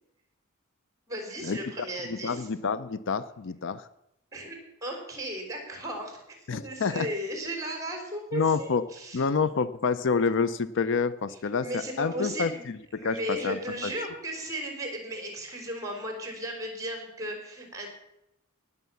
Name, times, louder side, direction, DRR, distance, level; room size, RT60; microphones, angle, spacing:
voice 1, 1.1-2.5 4.3-9.2 11.6-12.6 12.9-17.9, right 1 dB, 15° right, 3 dB, 4.0 m, -35 dB
voice 2, 2.1-3.9 6.5-7.1 8.3-8.8 9.1-12.5 12.9-13.9, left 5 dB, 60° left, 15 dB, 0.6 m, -28 dB
18.5 x 6.9 x 7.0 m, 0.85 s
head